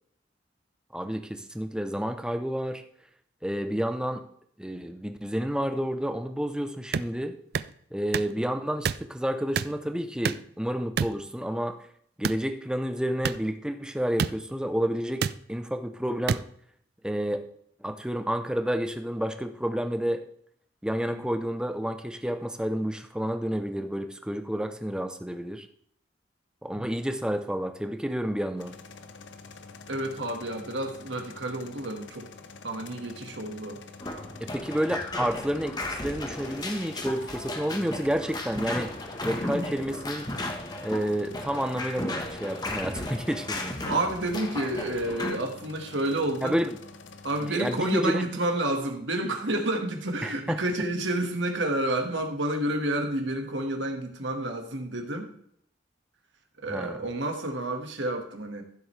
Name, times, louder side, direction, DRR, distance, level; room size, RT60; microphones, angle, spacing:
voice 1, 0.9-2.8 3.4-4.2 4.6-7.4 7.9-11.7 12.2-16.4 17.0-17.4 17.8-20.2 20.8-25.7 26.6-28.7 34.4-38.9 39.2-40.3 40.8-43.8 46.4-46.8 47.5-48.3 50.2-50.6 56.7-57.0, equal, 5° right, 7 dB, 0.7 m, -30 dB
sound 1, 6.9-7.1 7.5-7.7 8.1-8.3 8.8-9.0 9.6-9.7 10.2-10.5 11.0-11.2 12.2-12.4 13.2-13.4 14.2-14.3 15.2-15.3 16.3-16.4, right 6 dB, 55° right, 0.4 m, -27 dB
sound 2, 28.6-48.0, left 4 dB, 90° left, 0.8 m, -47 dB
voice 2, 29.9-32.3 32.6-33.8 39.2-39.5 43.8-46.6 47.2-55.3 56.6-58.6, right 1 dB, 85° right, 4 dB, 1.8 m, -30 dB
sound 3, 34.0-45.4, left 1 dB, 20° left, 1.2 m, -35 dB
14.5 x 7.8 x 3.3 m, 0.67 s
head